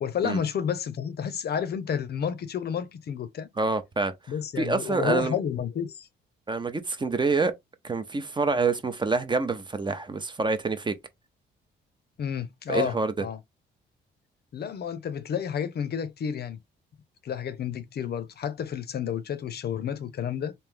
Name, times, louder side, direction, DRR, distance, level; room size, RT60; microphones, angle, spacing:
voice 1, 0.0-3.5 4.3-6.1 12.2-13.4 14.5-16.6 17.2-20.5, left 8 dB, 55° left, 0.7 m, -30 dB
voice 2, 3.6-4.1 4.6-5.3 6.5-7.5 7.8-10.9 12.7-13.1, right 3 dB, 25° right, 0.7 m, -26 dB
3.2 x 2.7 x 3.6 m
cardioid pair, 90°, 20 cm